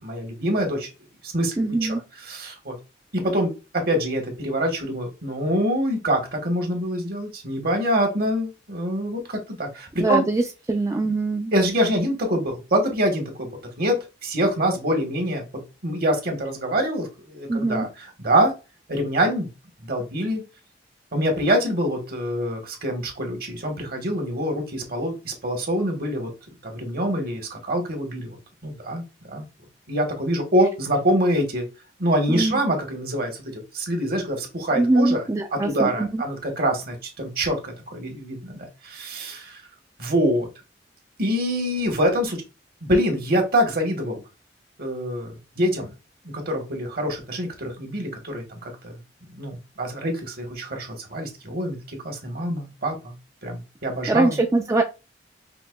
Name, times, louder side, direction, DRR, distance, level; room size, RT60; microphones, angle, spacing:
voice 1, 0.0-0.9 1.2-1.6 1.8-2.7 3.1-10.2 11.5-13.5 13.8-15.4 15.8-17.9 18.2-18.5 18.9-19.5 19.8-20.4 21.1-26.3 26.6-29.4 29.9-31.7 32.0-35.2 35.5-39.6 40.0-40.5 41.2-42.4 42.8-44.2 44.8-45.9 46.3-48.9 49.3-53.1 53.4-54.4, equal, 55° right, 4 dB, 1.3 m, -25 dB
voice 2, 1.6-2.0 10.0-10.4 10.7-11.5 17.5-17.9 32.3-32.6 34.8-36.2 54.1-54.8, right 2 dB, 15° right, 3 dB, 0.3 m, -22 dB
5.2 x 2.8 x 2.2 m, 0.29 s
head